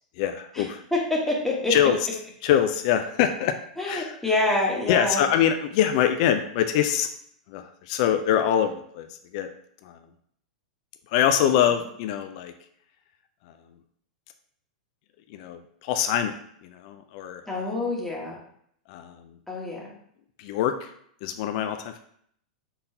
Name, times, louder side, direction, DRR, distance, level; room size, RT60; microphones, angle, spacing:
voice 1, 0.2-0.8 1.7-2.0 2.4-3.5 3.9-4.1 4.9-7.1 7.5-9.1 9.3-9.5 9.8-10.0 11.1-12.5 15.3-16.3 16.6-17.4 18.9-19.2 20.4-20.9 21.2-22.0, left 10 dB, 55° left, 7 dB, 0.4 m, -24 dB
voice 2, 0.9-1.7 3.8-5.2 11.4-11.7 17.5-18.4 19.5-19.9, left 2 dB, 5° left, -3 dB, 1.1 m, -26 dB
3.9 x 3.8 x 2.7 m, 0.67 s
hypercardioid pair, 110°, 4 cm